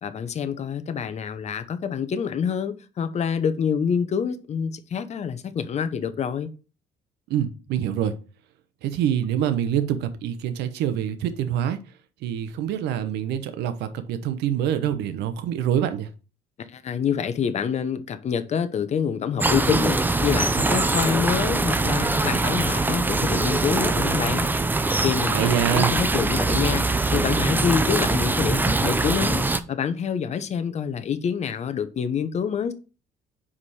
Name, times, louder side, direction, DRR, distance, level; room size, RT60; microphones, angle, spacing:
voice 1, 0.0-6.5 16.6-24.5 25.0-26.8 27.1-32.7, left 7 dB, 40° left, 0.9 m, -27 dB
voice 2, 7.3-8.1 8.8-11.8 12.2-16.1 25.3-25.9, right 10 dB, 80° right, 0.8 m, -25 dB
sound 1, 19.4-29.6, right 3 dB, 10° right, 0.5 m, -23 dB
5.0 x 4.8 x 5.6 m
cardioid pair, 110°, 17 cm